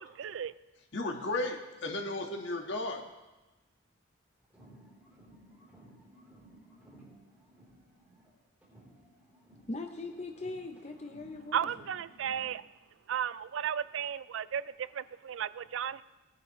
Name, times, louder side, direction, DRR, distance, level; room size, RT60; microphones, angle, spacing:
voice 1, 0.2-0.5 11.5-12.6 13.1-14.6 14.9-16.0, right 8 dB, 65° right, 17 dB, 0.3 m, -34 dB
voice 2, 0.9-3.1, left 2 dB, 55° left, 2 dB, 1.6 m, -34 dB
sound 1, 4.4-8.3 8.6-12.6, right 1 dB, 10° right, 3.5 m, -57 dB
voice 3, 9.7-11.7, left 2 dB, 30° left, 4 dB, 0.6 m, -40 dB
19.5 x 10.5 x 3.1 m, 1.1 s
head